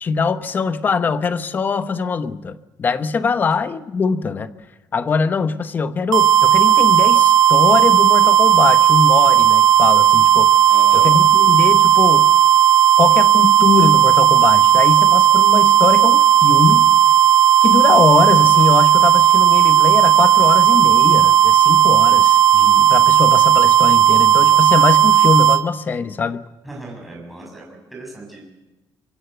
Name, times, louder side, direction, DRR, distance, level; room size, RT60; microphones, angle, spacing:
voice 1, 0.0-4.5 4.9-10.5 10.9-12.3 13.0-16.9 17.6-26.4, left 5 dB, 25° left, 11 dB, 1.0 m, -21 dB
sound 1, 6.1-25.6, right 11 dB, 70° right, 2.2 m, -13 dB
voice 2, 10.7-11.1 26.6-28.4, right 2 dB, ahead, -2 dB, 7.3 m, -37 dB
25.5 x 24.5 x 8.1 m, 1.1 s
cardioid pair, 180°, 7 cm